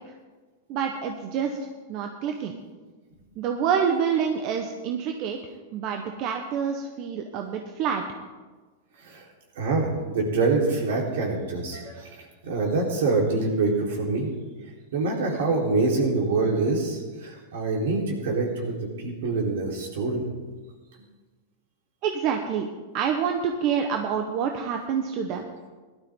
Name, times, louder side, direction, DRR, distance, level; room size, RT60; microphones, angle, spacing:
voice 1, 0.7-1.6 1.9-2.6 3.4-5.4 5.7-8.0 22.0-22.7 22.9-25.5, right 7 dB, 45° right, 4 dB, 1.1 m, -27 dB
voice 2, 9.6-12.1 12.4-14.3 14.9-20.2, right 3 dB, 75° right, -1 dB, 4.0 m, -25 dB
17.0 x 12.0 x 3.8 m, 1.4 s
hypercardioid pair, 130°, 0 cm